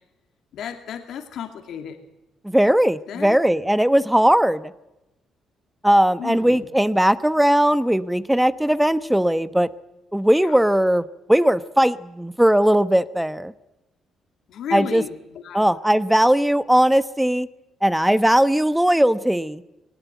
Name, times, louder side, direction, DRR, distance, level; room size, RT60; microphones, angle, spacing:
voice 1, 0.5-2.0 3.1-3.4 6.2-6.7 10.4-10.6 14.5-15.6, left 8 dB, 75° left, 5 dB, 2.5 m, -33 dB
voice 2, 2.4-4.7 5.8-9.7 10.1-11.0 11.3-13.5 14.7-15.0 15.5-17.5 17.8-19.6, right 1 dB, 5° right, 14 dB, 1.0 m, -18 dB
20.5 x 19.0 x 9.3 m, 0.94 s
cardioid pair, 90°, 0 cm